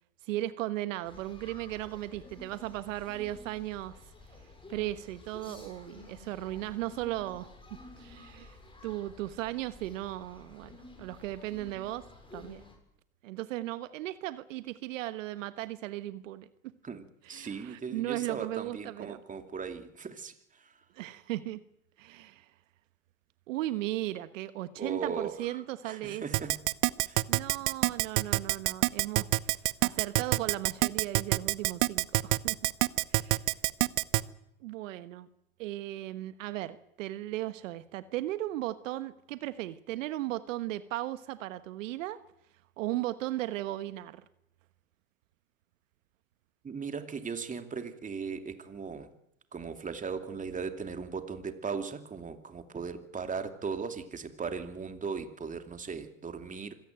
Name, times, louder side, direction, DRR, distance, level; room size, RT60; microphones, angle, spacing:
voice 1, 0.2-4.0 4.7-7.5 8.0-8.6 8.8-12.0 12.3-12.6 13.2-16.5 17.2-19.2 20.9-21.6 22.0-22.5 23.5-26.2 27.3-29.5 29.8-32.7 33.1-33.4 34.6-35.3 35.6-42.2 42.8-44.2, right 15 dB, 70° right, 12 dB, 1.3 m, -36 dB
sound 1, 1.0-12.7, left 2 dB, 15° left, 7.4 m, -52 dB
voice 2, 17.3-20.7 24.8-25.6 25.8-26.6 27.0-27.2 46.6-49.1 49.5-56.7, right 5 dB, 20° right, 7 dB, 2.6 m, -38 dB
Keyboard (musical), 26.3-34.2, right 26 dB, 50° right, 0.9 m, -25 dB
25.5 x 17.0 x 9.2 m, 0.77 s
hypercardioid pair, 100°, 40 cm